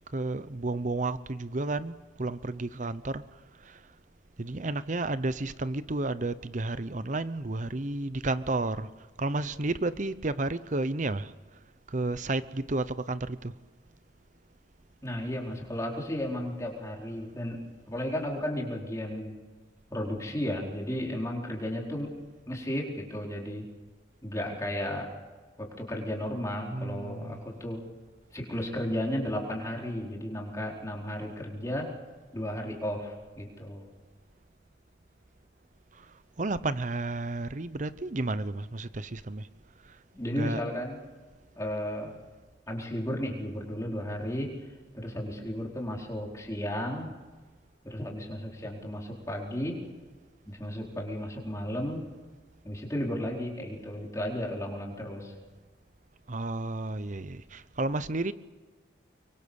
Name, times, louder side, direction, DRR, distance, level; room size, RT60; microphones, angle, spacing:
voice 1, 0.1-3.2 3.6-3.8 4.4-8.9 9.2-11.3 11.9-13.5 26.7-27.4 36.0-36.1 36.4-39.5 40.3-40.6 56.3-58.3, right 2 dB, 40° right, 0.8 m, -32 dB
voice 2, 15.0-17.6 17.9-19.3 19.9-22.1 22.5-23.6 24.2-25.1 25.6-27.8 28.3-31.9 32.3-33.9 40.1-41.0 41.6-42.2 42.7-44.5 44.9-47.1 47.8-49.8 50.5-52.0 52.6-55.3, left 1 dB, 15° left, 4.5 m, -34 dB
25.0 x 23.5 x 7.1 m
head